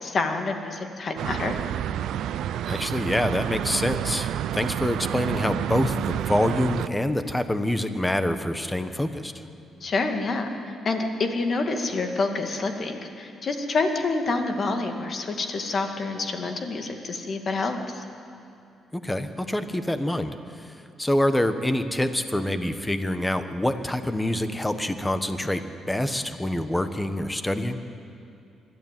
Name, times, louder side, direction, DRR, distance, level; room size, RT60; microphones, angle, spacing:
voice 1, 0.0-1.6 9.8-10.5 10.8-18.0, left 3 dB, 45° left, 5 dB, 2.2 m, -27 dB
sound 1, 1.2-6.9, right 11 dB, 80° right, 0.5 m, -29 dB
voice 2, 2.7-9.3 18.9-20.7 21.0-27.8, left 1 dB, 10° left, 9 dB, 1.3 m, -26 dB
22.5 x 12.5 x 9.2 m, 2.6 s
cardioid pair, 90°, 0 cm